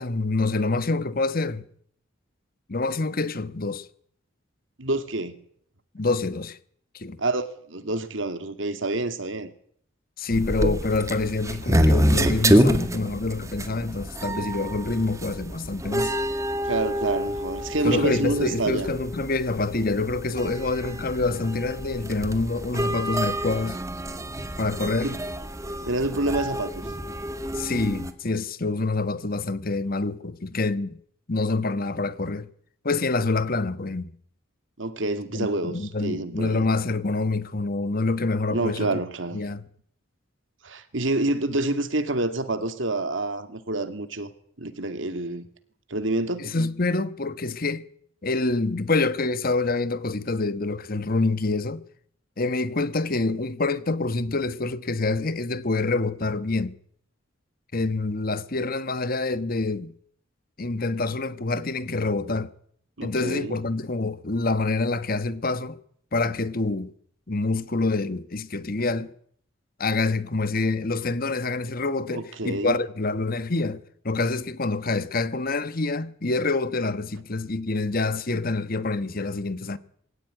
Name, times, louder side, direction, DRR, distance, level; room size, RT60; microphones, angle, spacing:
voice 1, 0.0-1.6 2.7-3.9 5.9-6.6 6.9-7.2 10.2-16.2 17.8-23.8 24.6-25.1 27.5-31.0 31.3-32.5 32.8-34.1 35.3-39.0 39.3-39.6 46.4-47.9 48.2-51.8 52.4-56.7 57.7-59.9 60.6-62.5 63.0-65.8 66.1-66.9 67.3-69.1 69.8-79.8, left 3 dB, 45° left, 1.2 m, -26 dB
voice 2, 4.8-5.3 7.2-9.5 16.6-18.9 25.0-25.2 25.8-26.9 34.8-35.7 36.0-36.7 38.5-39.4 40.6-44.3 44.6-45.5 45.9-46.5 63.0-63.6 72.1-72.8, right 2 dB, 70° right, 2.4 m, -27 dB
sound 1, 10.3-28.1, equal, 15° right, 2.0 m, -27 dB
22.0 x 17.0 x 9.8 m
head